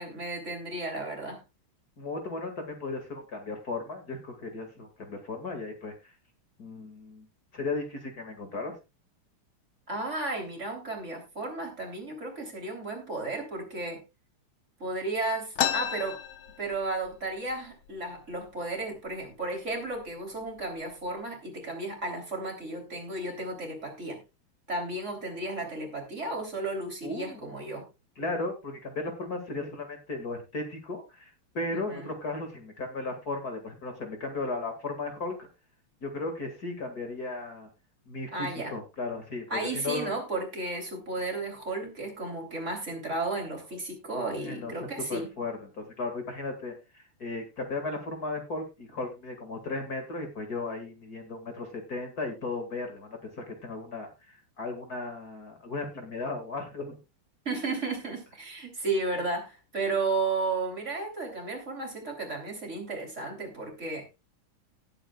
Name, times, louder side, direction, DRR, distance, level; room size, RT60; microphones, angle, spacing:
voice 1, 0.0-1.4 9.9-14.0 14.8-16.2 16.6-24.2 24.7-27.9 31.7-32.1 38.3-38.8 39.5-45.3 57.5-64.1, right 2 dB, 35° right, 1 dB, 3.5 m, -33 dB
voice 2, 2.0-6.1 6.6-7.3 7.5-8.8 27.0-27.6 28.2-35.5 36.0-37.7 38.1-40.2 44.4-57.0, left 3 dB, 45° left, 5 dB, 2.4 m, -36 dB
sound 1, 15.6-17.2 17.5-17.6 17.9-18.5 19.1-19.2 19.9-20.1 20.6-21.0, left 9 dB, 70° left, 1.8 m, -31 dB
18.5 x 8.6 x 2.3 m, 0.25 s
omnidirectional pair, 2.3 m